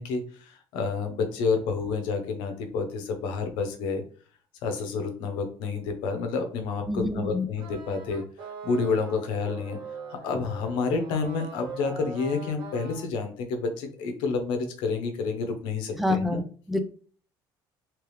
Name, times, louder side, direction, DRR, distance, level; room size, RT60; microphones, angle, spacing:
voice 1, 0.0-4.0 4.6-8.2 8.6-9.8 10.1-16.4, left 4 dB, 75° left, 6 dB, 1.0 m, -29 dB
voice 2, 6.9-7.5 16.0-16.8, left 2 dB, ahead, 7 dB, 0.4 m, -27 dB
sound 1, 7.6-13.0, right 4 dB, 70° right, 1.0 m, -41 dB
3.4 x 3.2 x 3.2 m, 0.43 s
cardioid pair, 170°, 8 cm